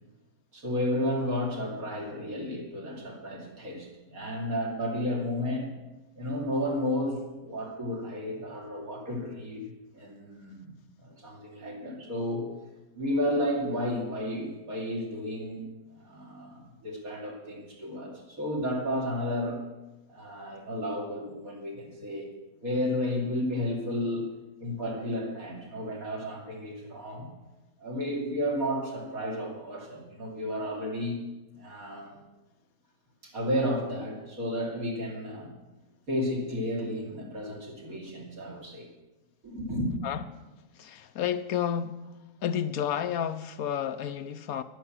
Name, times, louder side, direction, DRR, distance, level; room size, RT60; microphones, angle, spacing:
voice 1, 0.5-5.7 6.2-9.7 9.9-10.7 11.0-12.5 12.9-15.7 15.9-19.6 20.1-22.3 22.6-24.3 24.6-27.3 27.8-31.2 31.5-32.2 33.2-35.5 36.1-38.9 39.4-39.9, left 1 dB, 60° right, 3.4 m, -32 dB
voice 2, 40.0-40.4 40.7-42.0 42.4-44.6, left 9 dB, 70° left, 1.0 m, -31 dB
10.5 x 10.0 x 7.4 m
omnidirectional pair, 1.7 m